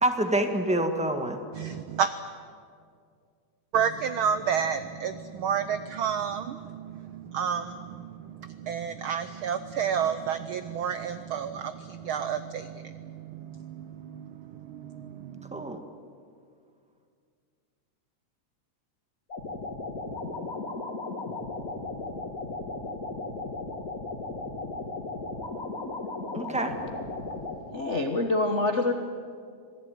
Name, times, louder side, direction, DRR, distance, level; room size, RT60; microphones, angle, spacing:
voice 1, 0.0-1.4 15.5-15.8 26.3-26.8, right 1 dB, 5° right, 5 dB, 0.7 m, -26 dB
voice 2, 1.5-2.1 3.7-15.4, right 7 dB, 90° right, 11 dB, 1.1 m, -31 dB
sound 1, 19.3-27.6, left 3 dB, 30° left, 2.5 m, -36 dB
voice 3, 27.7-28.9, left 2 dB, 80° left, 5 dB, 0.6 m, -25 dB
26.5 x 18.0 x 9.3 m, 2.2 s
omnidirectional pair, 3.3 m